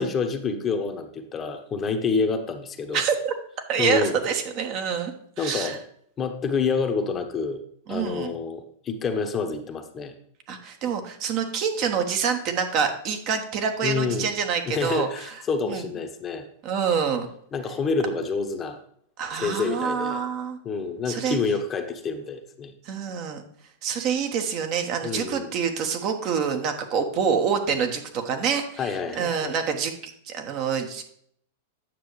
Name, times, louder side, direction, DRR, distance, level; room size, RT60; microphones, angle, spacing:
voice 1, 0.0-3.0 3.8-4.2 5.4-5.8 6.2-7.6 7.9-10.1 13.8-14.3 14.7-16.5 17.5-18.8 19.3-20.2 20.6-22.7 25.0-25.5 28.8-29.5, left 4 dB, 25° left, 6 dB, 1.0 m, -28 dB
voice 2, 2.9-3.3 3.7-5.8 7.9-8.3 10.5-15.9 16.6-17.3 19.2-20.6 21.1-21.4 22.8-23.4 23.8-31.0, right 6 dB, 45° right, 5 dB, 1.3 m, -27 dB
9.0 x 6.6 x 3.2 m, 0.64 s
hypercardioid pair, 100°, 0 cm